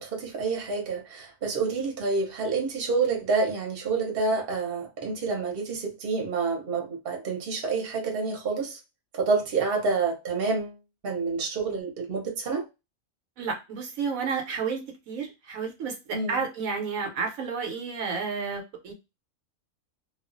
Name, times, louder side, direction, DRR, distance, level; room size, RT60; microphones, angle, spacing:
voice 1, 0.0-8.8 9.1-10.8 11.0-12.6 16.1-16.4, right 4 dB, 50° right, 0.9 m, -28 dB
voice 2, 13.4-18.9, right 5 dB, 80° right, 1.1 m, -31 dB
2.4 x 2.4 x 2.5 m
omnidirectional pair, 1.4 m